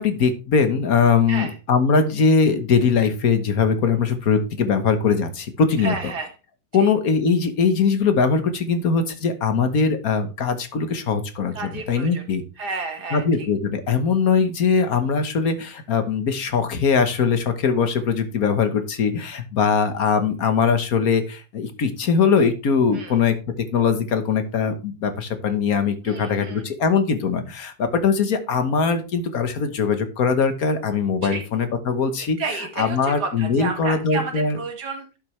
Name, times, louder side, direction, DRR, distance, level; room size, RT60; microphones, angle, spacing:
voice 1, 0.0-6.1 6.7-12.4 13.1-23.3 23.7-32.4 32.8-34.6, left 5 dB, 65° left, 9 dB, 1.7 m, -21 dB
voice 2, 5.8-6.3 6.8-6.9 11.5-12.2 12.6-13.5 22.9-23.2 26.0-26.7 31.2-31.4 32.2-35.1, right 4 dB, 85° right, 4 dB, 2.4 m, -31 dB
12.0 x 6.8 x 3.2 m, 0.32 s
omnidirectional pair, 1.7 m